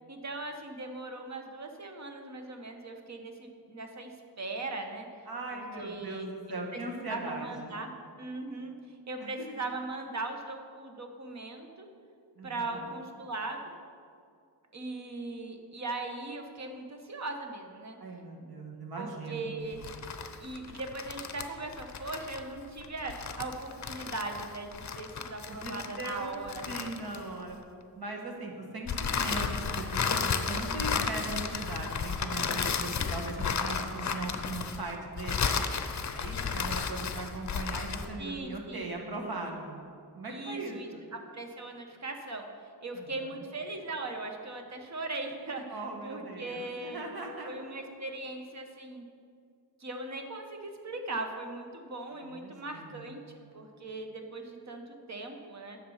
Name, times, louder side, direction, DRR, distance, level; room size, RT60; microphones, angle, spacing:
voice 1, 0.1-4.1 4.4-5.1 5.5-6.3 6.7-7.9 8.2-8.7 9.1-11.9 12.4-13.6 14.7-18.0 19.0-19.9 20.4-26.6 38.2-38.8 40.3-42.5 42.8-47.0 47.4-49.0 49.8-55.8, right 2 dB, 40° right, 4 dB, 1.1 m, -39 dB
voice 2, 5.3-7.7 9.2-9.5 12.4-12.8 18.0-19.6 25.5-26.3 26.6-27.6 27.9-35.5 36.1-39.8 40.1-41.1 42.9-43.4 45.7-47.7 52.1-53.2, right 2 dB, 60° right, 1 dB, 1.6 m, -39 dB
sound 1, 19.7-27.5 28.9-38.2, left 6 dB, 45° left, 0.6 m, -33 dB
10.0 x 6.8 x 5.6 m, 2.3 s
wide cardioid pair, 155°, 41 cm